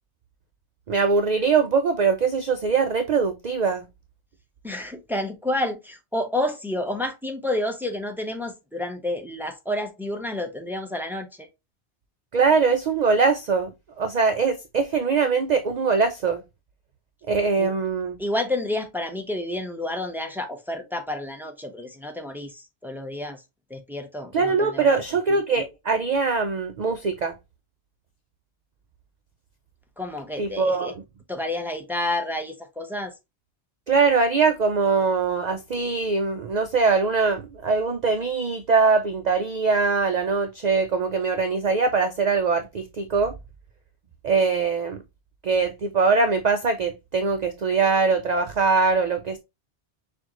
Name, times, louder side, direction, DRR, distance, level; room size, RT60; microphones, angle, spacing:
voice 1, 0.9-3.8 12.3-16.4 17.3-18.2 24.3-27.3 30.4-30.9 33.9-43.3 44.2-45.0 45.4-49.4, right 4 dB, 55° right, 0.5 m, -22 dB
voice 2, 4.6-11.5 17.6-17.7 18.2-23.4 23.7-25.0 30.0-30.9 31.3-33.1, left 1 dB, ahead, 0.6 m, -30 dB
6.3 x 2.5 x 2.9 m
omnidirectional pair, 1.2 m